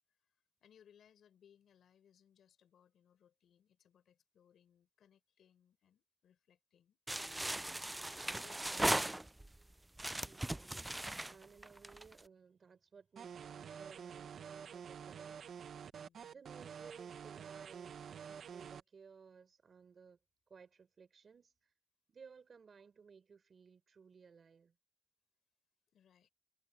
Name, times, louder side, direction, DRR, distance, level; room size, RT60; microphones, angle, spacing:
voice 1, 0.1-7.8 8.3-9.0 15.9-16.4 25.9-26.3, left 9 dB, 85° left, 4.6 m, -68 dB
sound 1, 7.1-9.6 10.0-12.2, right 1 dB, 15° right, 0.4 m, -38 dB
voice 2, 10.2-15.5 16.3-20.2 20.5-21.7 22.1-24.8, right 5 dB, 65° right, 4.2 m, -59 dB
sound 2, 13.2-18.8, right 7 dB, 80° right, 1.1 m, -49 dB
cardioid pair, 55°, 0 cm